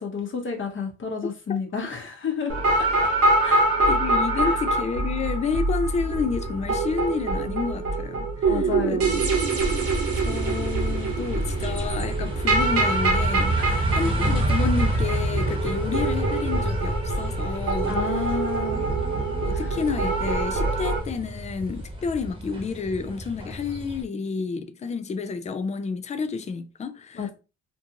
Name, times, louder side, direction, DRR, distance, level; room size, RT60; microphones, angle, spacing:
voice 1, 0.0-3.1 3.4-3.7 4.4-4.6 8.4-9.2 13.6-13.9 17.9-18.8 19.5-19.7 27.1-27.3, left 5 dB, 40° left, 0.9 m, -31 dB
sound 1, 2.5-21.0, right 2 dB, 50° right, 1.0 m, -25 dB
voice 2, 3.9-8.6 8.9-9.0 10.2-18.0 19.4-27.3, left 5 dB, 25° left, 0.4 m, -30 dB
sound 2, 9.1-24.0, right 1 dB, 15° right, 1.1 m, -29 dB
sound 3, 14.2-18.9, right 4 dB, 85° right, 0.8 m, -39 dB
2.6 x 2.4 x 2.8 m
cardioid pair, 90°, 30 cm